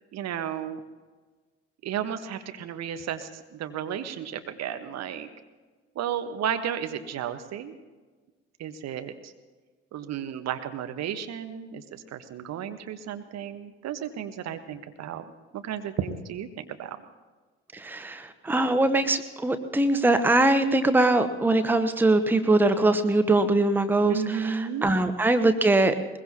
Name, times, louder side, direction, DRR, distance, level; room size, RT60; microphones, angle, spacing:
voice 1, 0.1-0.8 1.8-5.3 5.9-7.8 8.6-9.3 9.9-15.2 15.5-17.0 24.1-24.8, right 9 dB, 45° right, 8 dB, 1.3 m, -33 dB
voice 2, 17.7-26.2, right 2 dB, 5° right, 10 dB, 1.0 m, -22 dB
21.5 x 21.5 x 2.9 m, 1.3 s
figure-of-eight pair, 55°, 36 cm